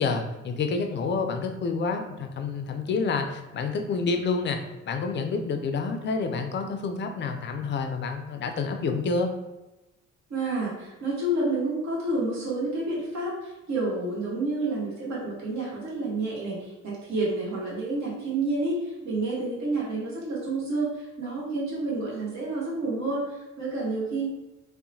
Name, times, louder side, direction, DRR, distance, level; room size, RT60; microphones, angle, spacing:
voice 1, 0.0-4.6 4.8-9.3, left 4 dB, 40° left, 5 dB, 0.4 m, -28 dB
voice 2, 10.3-24.3, right 2 dB, 65° right, -5 dB, 1.2 m, -29 dB
2.8 x 2.1 x 2.6 m, 1.0 s
cardioid pair, 90°, 30 cm